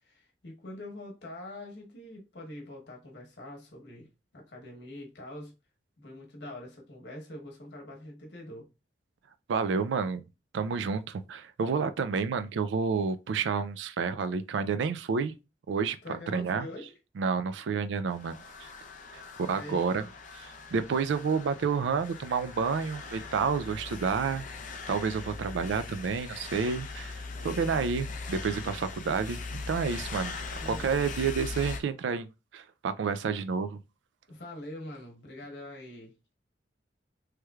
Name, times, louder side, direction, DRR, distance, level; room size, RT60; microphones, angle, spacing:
voice 1, 0.0-4.1 4.3-5.5 6.0-8.7 16.0-16.9 19.2-20.1 27.3-27.9 30.5-31.1 34.3-36.3, left 1 dB, 70° left, 1.0 m, -44 dB
voice 2, 9.5-10.2 10.5-15.3 15.7-16.0 16.3-16.7 17.2-18.7 19.1-20.0 20.4-24.4 24.9-30.4 30.7-32.3 32.5-33.8, right 5 dB, 80° right, 0.3 m, -30 dB
sound 1, 18.1-31.8, left 4 dB, 45° left, 0.5 m, -40 dB
3.2 x 3.1 x 2.3 m
head